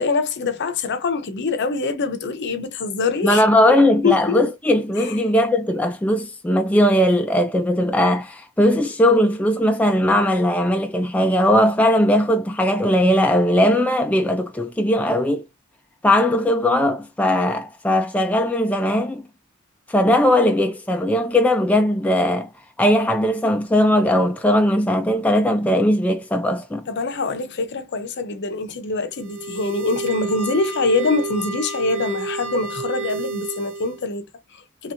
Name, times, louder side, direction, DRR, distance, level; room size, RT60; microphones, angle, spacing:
voice 1, 0.0-3.5 4.0-4.5 5.0-5.3 20.3-20.5 26.9-34.9, left 3 dB, 55° left, 0.6 m, -24 dB
voice 2, 3.2-15.4 16.0-19.3 19.9-22.5 22.8-26.9, left 1 dB, 5° left, 0.3 m, -19 dB
sound 1, 29.1-34.0, right 3 dB, 65° right, 0.9 m, -30 dB
3.1 x 2.8 x 2.5 m
head